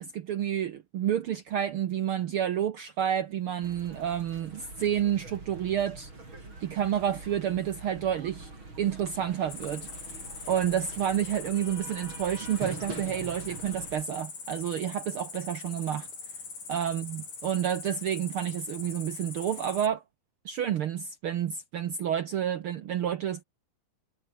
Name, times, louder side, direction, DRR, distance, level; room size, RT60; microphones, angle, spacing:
voice 1, 0.0-6.1 6.6-8.5 8.8-9.9 10.5-16.1 16.7-20.0 20.4-23.4, right 9 dB, 80° right, 1.2 m, -29 dB
sound 1, 3.6-14.0, right 2 dB, 35° right, 7.8 m, -44 dB
Cricket, 9.5-19.9, left 4 dB, 75° left, 8.4 m, -42 dB
omnidirectional pair, 3.8 m